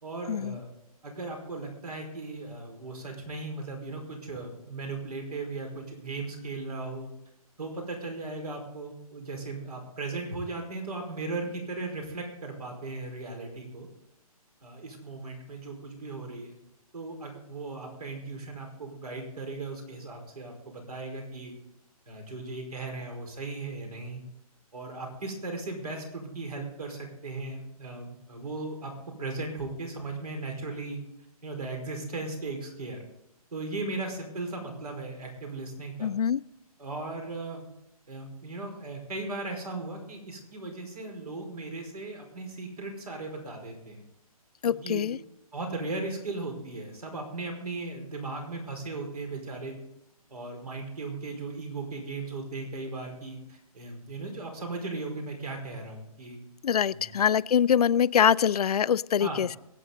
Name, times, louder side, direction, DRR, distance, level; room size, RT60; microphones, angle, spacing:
voice 1, 0.0-0.7 1.0-7.1 7.6-13.9 14.6-16.5 16.9-21.6 22.1-24.2 24.7-28.9 29.2-31.0 31.4-33.0 33.5-36.1 36.8-37.6 38.1-44.0 44.6-45.1 45.5-49.8 50.3-56.4 56.9-57.1 59.2-59.4, right 3 dB, 85° right, 3 dB, 4.9 m, -37 dB
voice 2, 36.0-36.4 44.6-45.2 56.6-59.6, left 8 dB, 80° left, 18 dB, 0.5 m, -24 dB
23.0 x 8.5 x 4.0 m, 0.84 s
hypercardioid pair, 155°, 19 cm